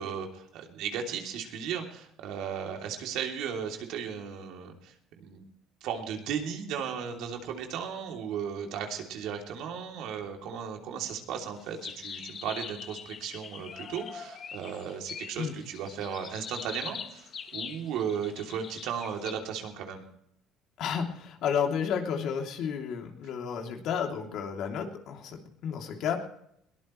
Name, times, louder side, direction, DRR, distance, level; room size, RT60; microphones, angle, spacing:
voice 1, 0.0-5.4 5.8-20.1, right 7 dB, 70° right, 2 dB, 3.1 m, -36 dB
sound 1, 11.6-19.3, left 6 dB, 45° left, 1.8 m, -42 dB
voice 2, 20.8-26.3, left 7 dB, 65° left, 2 dB, 3.0 m, -32 dB
21.5 x 18.0 x 3.2 m, 0.74 s
cardioid pair, 110°, 0 cm